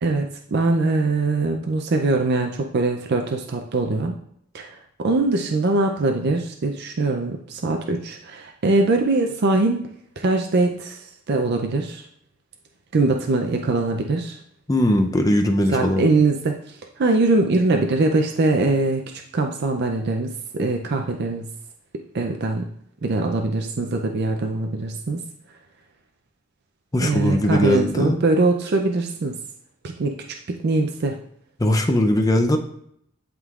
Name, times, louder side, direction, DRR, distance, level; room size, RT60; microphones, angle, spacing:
voice 1, 0.0-4.1 4.5-9.9 10.2-12.0 12.9-14.4 15.7-21.5 22.1-22.7 23.0-25.2 27.0-29.3 29.8-30.2 30.5-31.2, right 2 dB, 55° right, 3 dB, 0.5 m, -22 dB
voice 2, 14.7-16.1 26.9-28.2 31.6-32.6, left 1 dB, 15° left, 5 dB, 0.5 m, -20 dB
11.0 x 3.7 x 2.4 m, 0.71 s
head